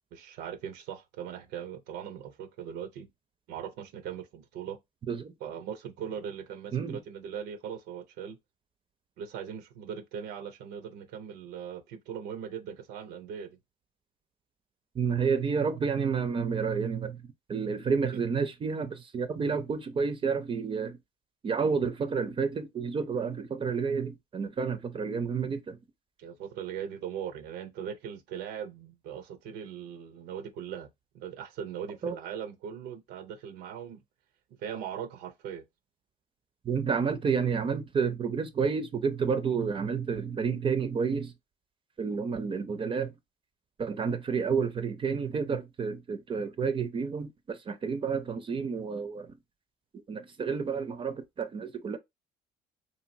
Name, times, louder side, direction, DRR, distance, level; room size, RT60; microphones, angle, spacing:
voice 1, 0.1-3.1 3.5-4.8 5.4-8.4 9.2-13.6 21.6-21.8 26.2-30.9 31.1-34.0 34.6-35.6, right 8 dB, 90° right, 0.5 m, -40 dB
voice 2, 14.9-21.0 21.4-25.8 32.0-32.2 36.6-41.3 42.0-43.1 43.8-49.3 50.1-52.0, right 5 dB, 30° right, 0.4 m, -30 dB
2.9 x 2.5 x 2.6 m
cardioid pair, 110°, 17 cm